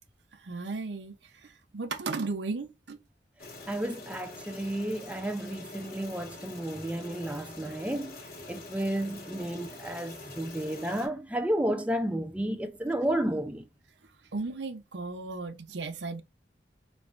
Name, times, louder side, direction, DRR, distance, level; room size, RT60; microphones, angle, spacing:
voice 1, 0.3-1.2 1.4-3.0 14.3-16.2, right 3 dB, 75° right, 0.7 m, -35 dB
sound 1, 3.4-11.1, left 2 dB, 55° left, 1.4 m, -45 dB
voice 2, 3.7-8.2 8.5-13.7, right 1 dB, 5° right, 0.4 m, -32 dB
4.2 x 3.1 x 2.4 m
head